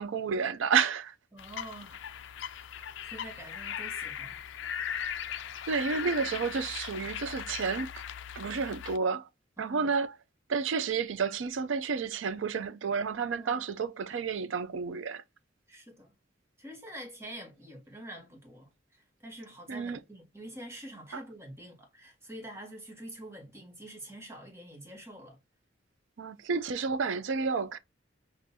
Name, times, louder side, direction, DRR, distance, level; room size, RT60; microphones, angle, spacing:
voice 1, 0.0-1.2 5.7-7.9 8.4-9.3 9.6-10.1 10.5-15.2 19.7-20.0 21.1-21.2 26.2-27.8, right 5 dB, 80° right, 0.5 m, -30 dB
voice 2, 1.3-2.0 3.0-4.5 9.6-9.9 13.3-13.7 15.7-16.2 16.6-25.4, right 1 dB, 15° right, 1.3 m, -46 dB
sound 1, 1.4-9.0, left 8 dB, 70° left, 0.4 m, -39 dB
6.0 x 2.5 x 2.7 m
head